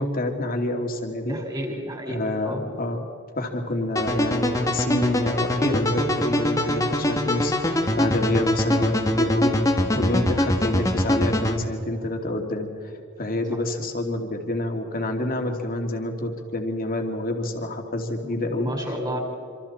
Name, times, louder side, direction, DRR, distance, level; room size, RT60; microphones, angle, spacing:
voice 1, 0.0-1.4 2.1-3.1 3.4-9.5 10.0-12.7 13.2-18.7, left 1 dB, 45° left, 3 dB, 2.7 m, -27 dB
voice 2, 1.2-2.2 2.4-2.7 8.1-8.4 9.9-10.2 13.5-13.6 18.2-19.2, equal, 20° right, 0 dB, 5.3 m, -32 dB
sound 1, 4.0-11.6, left 1 dB, 15° left, 1.7 m, -23 dB
27.0 x 26.5 x 4.4 m, 2.6 s
head